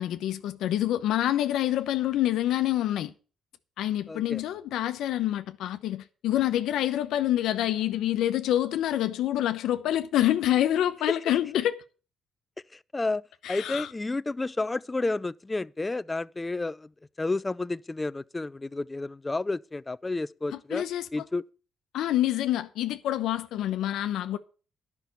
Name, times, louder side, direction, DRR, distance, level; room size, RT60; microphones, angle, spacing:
voice 1, 0.0-3.1 3.8-11.8 13.4-13.9 20.5-21.1 21.9-24.4, left 12 dB, 85° left, 0.9 m, -27 dB
voice 2, 4.1-4.4 11.1-11.2 12.9-13.2 13.5-16.9 17.2-20.8 21.1-21.4, left 2 dB, 20° left, 0.4 m, -31 dB
10.5 x 5.8 x 8.1 m
cardioid pair, 90°, 0 cm